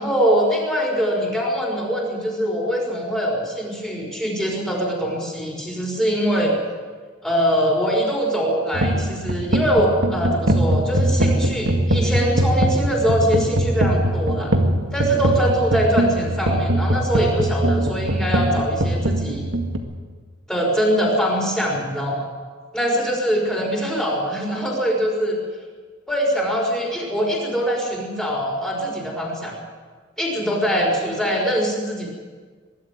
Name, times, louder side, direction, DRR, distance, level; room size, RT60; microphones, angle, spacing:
voice 1, 0.0-6.6 7.2-14.5 14.9-19.4 20.5-22.3 22.7-25.4 26.1-29.5 30.2-32.1, equal, 5° left, -1 dB, 5.6 m, -22 dB
sound 1, 8.7-19.8, right 1 dB, 80° right, 2.1 m, -21 dB
22.5 x 12.5 x 9.4 m, 1.5 s
head